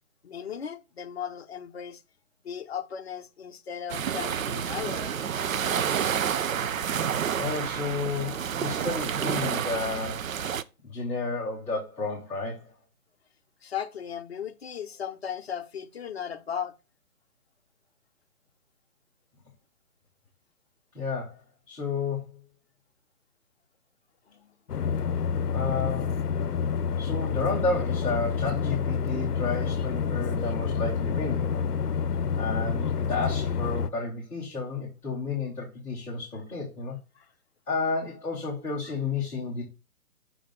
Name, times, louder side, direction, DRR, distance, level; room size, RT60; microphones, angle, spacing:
voice 1, 0.2-2.0 2.4-5.2 13.6-16.8 24.3-24.5 37.2-37.3 38.8-38.9, left 8 dB, 45° left, 0.8 m, -36 dB
sound 1, 3.9-10.6, right 8 dB, 60° right, 0.6 m, -29 dB
voice 2, 7.4-10.3 10.8-12.7 20.9-21.4 21.7-22.4 25.5-26.1 27.0-31.7 32.3-37.0 37.7-39.6, left 4 dB, 5° left, 1.1 m, -31 dB
sound 2, 24.7-33.9, left 6 dB, 85° left, 0.7 m, -28 dB
6.0 x 5.0 x 3.8 m
figure-of-eight pair, 150°, 46 cm